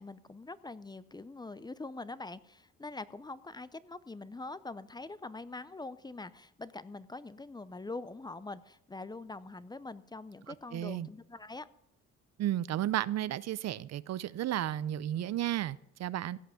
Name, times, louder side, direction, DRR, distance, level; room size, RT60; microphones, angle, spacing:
voice 1, 0.0-11.7, left 3 dB, 15° left, 16 dB, 0.6 m, -44 dB
voice 2, 10.5-11.1 12.4-16.4, right 12 dB, 60° right, 19 dB, 0.6 m, -33 dB
16.5 x 5.8 x 8.0 m, 0.78 s
cardioid pair, 90°, 30 cm